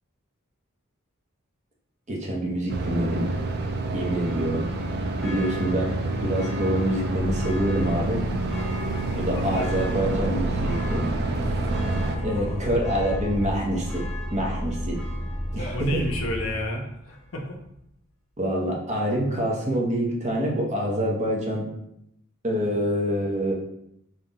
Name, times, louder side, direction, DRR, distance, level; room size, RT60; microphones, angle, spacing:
voice 1, 2.1-3.3 3.9-4.6 5.2-5.9 6.2-8.2 9.2-11.1 12.2-14.0 14.3-15.0 15.5-16.1 18.4-21.6 22.4-23.5, equal, 35° right, -2 dB, 0.8 m, -26 dB
sound 1, 2.7-12.2, right 2 dB, 50° right, 0.4 m, -28 dB
Church bell, 3.1-16.7 17.1-17.2, left 1 dB, ahead, 0.6 m, -44 dB
sound 2, 7.2-16.5, equal, 35° left, 0.9 m, -32 dB
voice 2, 9.3-9.7 15.7-17.6, left 1 dB, 70° left, 1 dB, 0.7 m, -31 dB
3.7 x 2.3 x 3.9 m, 0.78 s
head